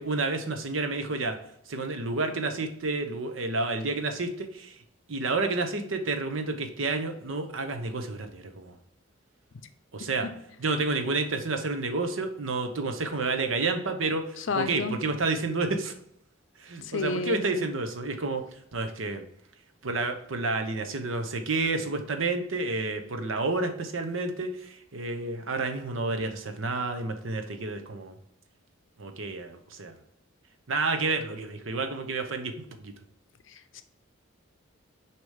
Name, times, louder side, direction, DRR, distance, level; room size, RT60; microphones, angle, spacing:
voice 1, 0.0-1.4 1.7-4.8 5.1-8.8 9.9-10.3 10.6-15.9 16.6-18.4 18.7-19.2 19.8-28.1 29.0-29.9 30.7-32.9, right 3 dB, 75° right, 7 dB, 0.8 m, -30 dB
voice 2, 14.4-14.9 16.8-17.7 33.5-33.8, left 4 dB, 65° left, 10 dB, 0.5 m, -32 dB
6.3 x 3.0 x 5.0 m, 0.71 s
head